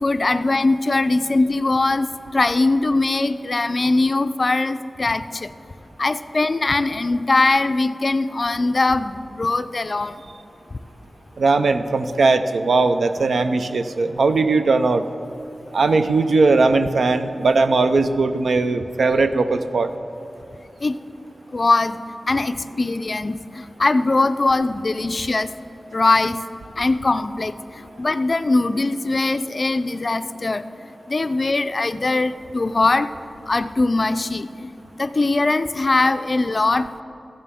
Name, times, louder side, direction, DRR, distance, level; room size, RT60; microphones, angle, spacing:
voice 1, 0.0-2.1 2.3-5.5 6.0-10.2 20.8-20.9 21.5-22.0 22.3-25.5 25.9-26.4 26.8-27.5 28.0-30.6 31.1-33.1 33.5-34.5 35.0-37.0, left 2 dB, 45° left, 11 dB, 0.3 m, -21 dB
voice 2, 11.4-15.0 15.7-19.9, right 3 dB, 85° right, 10 dB, 0.4 m, -19 dB
14.0 x 8.9 x 3.5 m, 2.9 s
wide cardioid pair, 80°, 0 cm